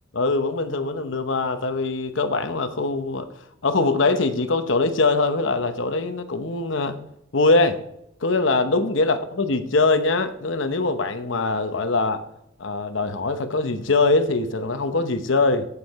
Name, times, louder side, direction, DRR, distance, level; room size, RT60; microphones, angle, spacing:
voice 1, 0.1-3.3 3.6-7.0 7.3-7.8 8.2-12.2 12.6-15.7, left 3 dB, 70° left, 8 dB, 0.9 m, -22 dB
8.5 x 8.3 x 4.2 m, 0.76 s
head